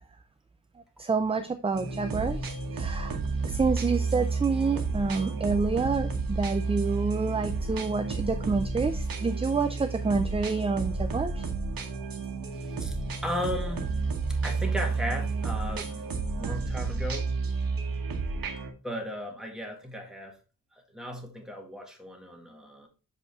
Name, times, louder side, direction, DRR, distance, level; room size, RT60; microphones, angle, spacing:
voice 1, 1.0-3.2 3.4-11.5, right 4 dB, 15° right, 0.4 m, -28 dB
sound 1, 1.7-18.7, right 4 dB, 80° right, 1.2 m, -31 dB
voice 2, 12.5-13.0 13.2-14.0 14.4-17.3 18.8-20.4 20.7-22.9, equal, ahead, 1.6 m, -36 dB
6.5 x 5.1 x 3.5 m
wide cardioid pair, 145°, 35 cm